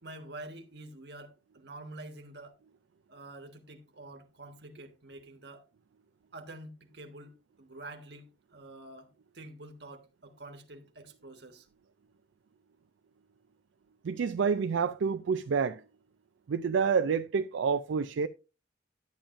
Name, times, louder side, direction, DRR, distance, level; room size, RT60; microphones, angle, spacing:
voice 1, 0.0-2.6 3.1-5.6 6.3-11.7, right 2 dB, 60° right, 1.3 m, -47 dB
voice 2, 14.0-15.8 16.5-18.3, right 6 dB, 80° right, 0.4 m, -28 dB
10.5 x 8.6 x 2.5 m
head